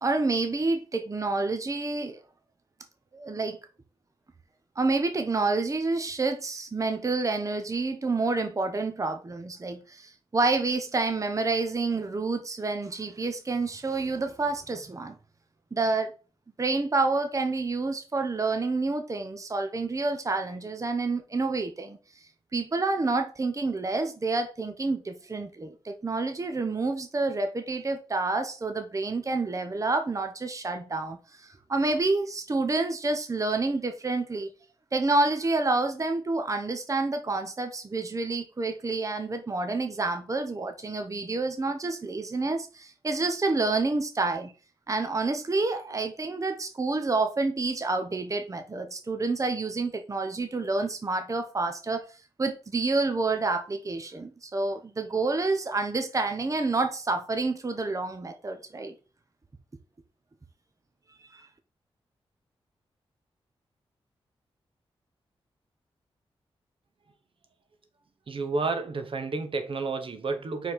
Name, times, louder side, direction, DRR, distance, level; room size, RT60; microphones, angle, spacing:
voice 1, 0.0-2.2 3.1-3.6 4.8-15.2 15.7-16.1 16.6-22.0 22.5-34.5 34.9-44.5 44.9-52.1 52.4-58.9 61.3-61.5, right 3 dB, 30° right, 0.9 m, -28 dB
voice 2, 68.3-70.7, right 3 dB, 60° right, 1.0 m, -30 dB
4.6 x 4.1 x 5.1 m
cardioid pair, 60°, 10 cm